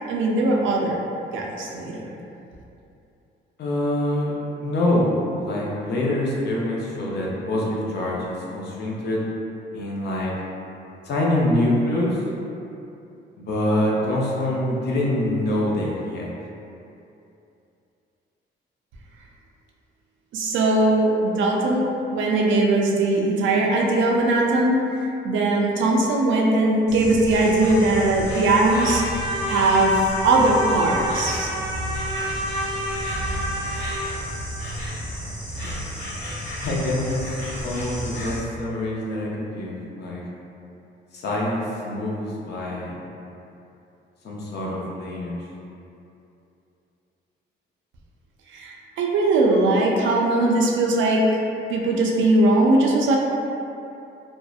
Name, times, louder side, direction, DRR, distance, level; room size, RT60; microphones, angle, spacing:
voice 1, 0.1-1.0 1.3-2.1 20.3-21.9 22.1-29.0 29.5-30.0 30.2-31.5 48.5-51.4 51.7-53.2, right 2 dB, 75° right, -1 dB, 0.4 m, -20 dB
voice 2, 3.6-4.3 4.6-9.2 9.7-10.3 11.0-12.2 13.4-16.3 35.5-35.6 36.6-37.2 37.6-40.2 41.1-42.9 44.2-45.4, left 1 dB, 55° left, -4 dB, 0.5 m, -25 dB
Insect, 26.9-38.4, equal, 90° left, 0.9 m, -32 dB
Trumpet, 28.6-34.1, equal, 5° right, 0.6 m, -29 dB
2.6 x 2.1 x 2.3 m, 2.8 s
cardioid pair, 90°, 20 cm